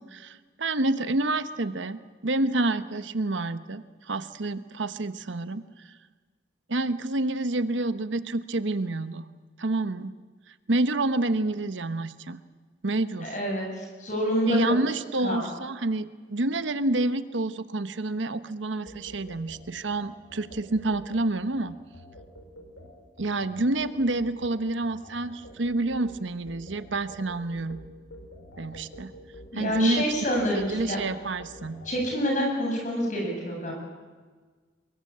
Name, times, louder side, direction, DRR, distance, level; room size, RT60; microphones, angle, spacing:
voice 1, 0.0-5.6 6.7-9.3 9.6-10.1 10.7-12.4 12.8-13.3 14.4-21.8 23.2-27.8 28.6-29.1 29.5-30.1 30.7-31.8, right 2 dB, 80° right, 12 dB, 1.0 m, -28 dB
voice 2, 13.2-14.6 15.2-15.4 29.5-31.0 31.8-33.7, equal, 40° left, 0 dB, 7.8 m, -27 dB
sound 1, 18.9-32.0, equal, 80° left, 4.8 m, -48 dB
23.5 x 21.5 x 8.6 m, 1.4 s
head